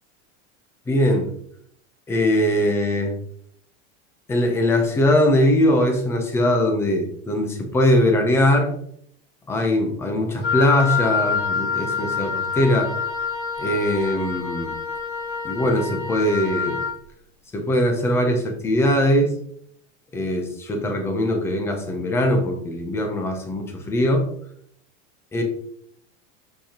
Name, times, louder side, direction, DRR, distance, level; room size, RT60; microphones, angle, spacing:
voice 1, 0.9-1.3 2.1-3.2 4.3-8.7 9.5-12.9 13.6-14.7 15.4-16.8 17.5-19.3 20.1-24.3 25.3-25.4, left 1 dB, 5° left, 3 dB, 0.6 m, -21 dB
Wind instrument woodwind instrument, 10.4-17.0, left 5 dB, 30° left, 1.1 m, -26 dB
6.6 x 6.0 x 2.9 m, 0.67 s
supercardioid pair, 180°, 35 cm